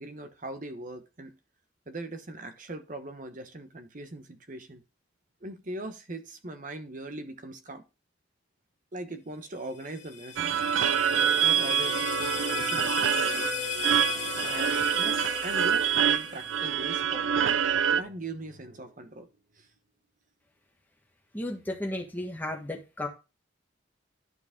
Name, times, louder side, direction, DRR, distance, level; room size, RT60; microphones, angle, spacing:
voice 1, 0.0-1.4 1.9-4.8 5.4-7.8 8.9-10.4 10.8-13.5 14.4-17.6 17.9-19.3 19.6-19.7, right 1 dB, 40° right, 1.0 m, -40 dB
sound 1, 9.7-16.8, left 8 dB, 40° left, 1.7 m, -36 dB
Drum, 10.4-19.6, equal, 60° right, 2.4 m, -50 dB
sound 2, 10.4-18.0, right 9 dB, 80° right, 0.5 m, -26 dB
voice 2, 21.3-23.1, left 1 dB, 10° left, 1.4 m, -34 dB
11.0 x 4.8 x 3.7 m
head